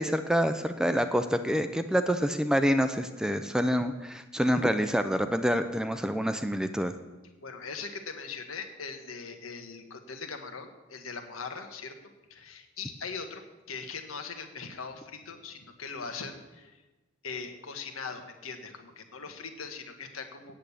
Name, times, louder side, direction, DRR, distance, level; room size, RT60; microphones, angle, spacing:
voice 1, 0.0-6.9, equal, 5° right, 9 dB, 0.4 m, -27 dB
voice 2, 7.4-11.9 12.3-16.8 17.2-20.6, left 5 dB, 90° left, 6 dB, 1.4 m, -40 dB
8.8 x 7.7 x 8.4 m, 1.2 s
head